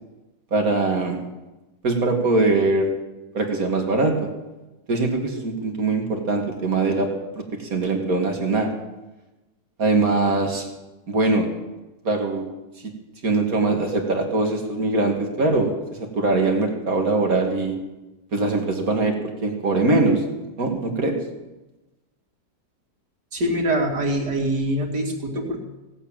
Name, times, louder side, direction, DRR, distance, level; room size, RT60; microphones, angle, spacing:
voice 1, 0.5-1.2 1.8-2.9 3.3-4.3 4.9-7.1 7.3-7.4 7.7-8.7 9.8-10.7 11.1-11.5 12.0-12.4 12.8-12.9 13.2-15.7 16.1-17.7 18.3-19.1 19.4-20.2 20.6-21.2, right 3 dB, 60° right, 2 dB, 2.7 m, -22 dB
voice 2, 23.3-25.6, right 1 dB, 90° right, 1 dB, 3.2 m, -24 dB
17.0 x 8.3 x 8.9 m, 1.0 s
omnidirectional pair, 1.7 m